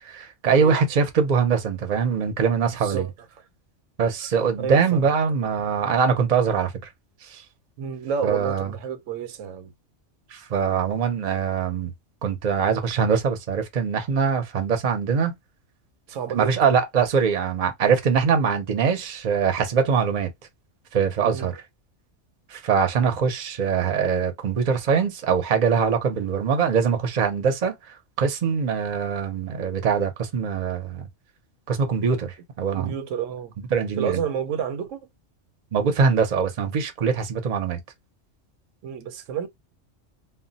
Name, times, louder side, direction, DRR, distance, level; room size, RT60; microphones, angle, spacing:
voice 1, 0.0-3.1 4.0-6.7 7.2-7.4 8.2-8.7 10.3-11.9 12.2-15.4 16.3-20.3 20.9-21.6 22.5-27.7 28.2-31.1 31.7-32.9 33.7-34.2 35.7-37.8, right 6 dB, 45° right, 0.6 m, -23 dB
voice 2, 2.8-3.1 4.6-5.1 7.8-9.7 10.3-10.4 16.1-16.6 21.2-21.5 32.7-33.5 34.0-35.1 38.8-39.5, right 7 dB, 80° right, 0.9 m, -30 dB
2.2 x 2.1 x 3.8 m
omnidirectional pair, 1.3 m